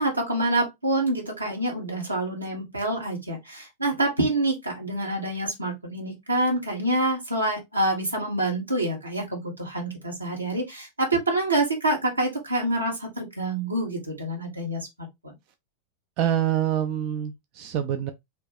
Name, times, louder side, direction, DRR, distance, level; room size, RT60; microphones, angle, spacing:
voice 1, 0.0-14.8 15.2-15.3, right 1 dB, 85° right, 1.4 m, -27 dB
voice 2, 16.2-18.1, right 10 dB, 45° right, 0.4 m, -26 dB
2.9 x 2.9 x 3.3 m
figure-of-eight pair, 90°, 0 cm